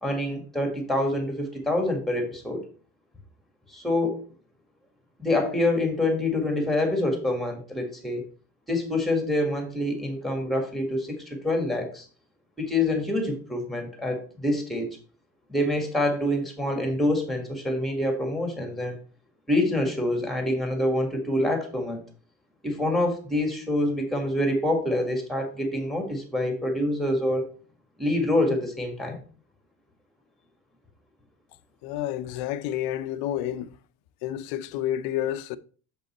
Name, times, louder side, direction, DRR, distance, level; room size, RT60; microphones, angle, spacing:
voice 1, 0.0-2.6 3.7-4.2 5.2-8.2 8.7-12.0 12.6-15.0 15.5-19.0 19.5-22.0 22.6-27.5 28.0-29.2, left 1 dB, ahead, 1.6 m, -26 dB
voice 2, 31.8-33.8 34.2-35.6, left 12 dB, 70° left, 0.7 m, -30 dB
6.9 x 5.2 x 4.2 m
cardioid pair, 155°, 38 cm